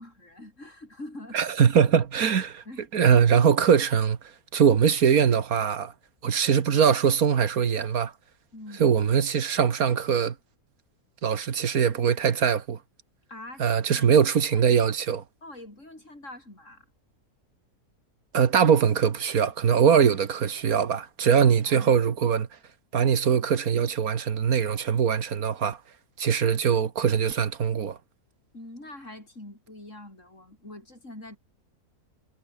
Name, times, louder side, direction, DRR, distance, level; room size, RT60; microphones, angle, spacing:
voice 1, 0.0-1.4 2.6-2.9 8.5-8.9 13.3-14.2 15.4-16.8 21.4-21.9 28.5-31.4, left 1 dB, 50° left, 7.9 m, -44 dB
voice 2, 1.3-2.6 2.9-4.2 4.5-5.9 6.2-8.1 8.8-10.3 11.2-12.8 13.6-15.2 18.3-22.5 22.9-25.8 26.2-28.0, right 7 dB, 70° right, 1.8 m, -22 dB
omnidirectional pair, 1.6 m